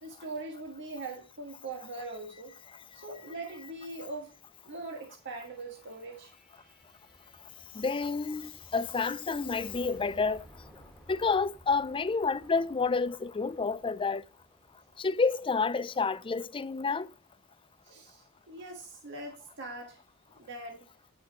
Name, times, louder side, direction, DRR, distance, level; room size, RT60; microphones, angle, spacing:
voice 1, 0.0-2.5 2.9-4.3 4.7-6.3 17.8-20.0 20.4-20.9, right 2 dB, 55° right, 1.7 m, -41 dB
sound 1, 3.8-16.8, equal, ahead, 1.8 m, -58 dB
voice 2, 7.7-10.4 11.1-14.2 15.0-17.1, left 4 dB, 25° left, 0.4 m, -29 dB
10.5 x 6.1 x 5.4 m
head